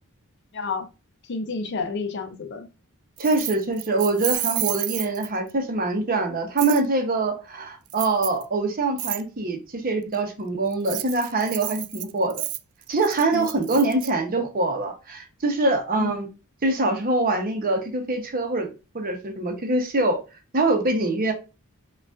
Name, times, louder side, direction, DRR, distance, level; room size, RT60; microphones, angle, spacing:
voice 1, 0.5-0.9 1.2-2.7 13.3-13.5 16.0-16.1, left 4 dB, 50° left, 0.5 m, -30 dB
voice 2, 3.2-12.4 12.9-16.3 16.6-18.7 18.9-20.2 20.5-21.3, right 2 dB, 40° right, 0.7 m, -24 dB
Keys jangling, 3.2-5.5 6.6-6.8 7.9-8.4 9.0-9.2 10.7-14.1, right 16 dB, 80° right, 0.3 m, -31 dB
4.9 x 2.4 x 2.3 m
head